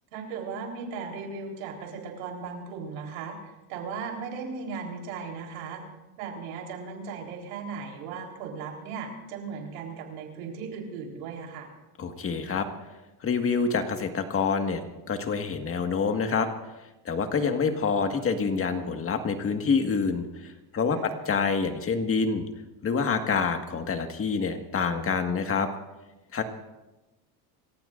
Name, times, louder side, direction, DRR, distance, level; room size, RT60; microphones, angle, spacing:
voice 1, 0.1-5.8 6.2-11.7 21.0-21.2, right 5 dB, 90° right, 1 dB, 4.0 m, -37 dB
voice 2, 12.0-12.7 13.2-14.8 15.1-16.5 17.1-22.4 22.8-25.7 26.3-26.4, left 5 dB, 30° left, 6 dB, 1.7 m, -27 dB
27.0 x 15.0 x 2.6 m, 1.0 s
supercardioid pair, 115°, 42 cm